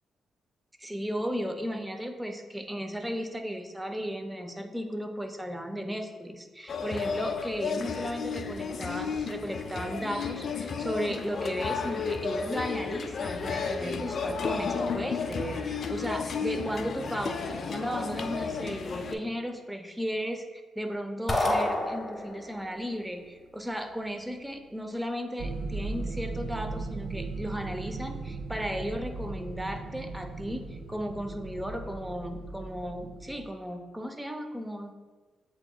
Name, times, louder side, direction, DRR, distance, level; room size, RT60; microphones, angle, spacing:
voice 1, 0.8-35.0, equal, 10° right, 6 dB, 0.5 m, -35 dB
sound 1, 6.7-19.1, left 5 dB, 60° left, 0.4 m, -33 dB
sound 2, 21.3-22.6, left 1 dB, 25° left, 0.7 m, -28 dB
sound 3, 25.4-33.5, right 3 dB, 65° right, 0.4 m, -37 dB
7.9 x 2.8 x 2.2 m, 1.4 s
cardioid pair, 75°, 0 cm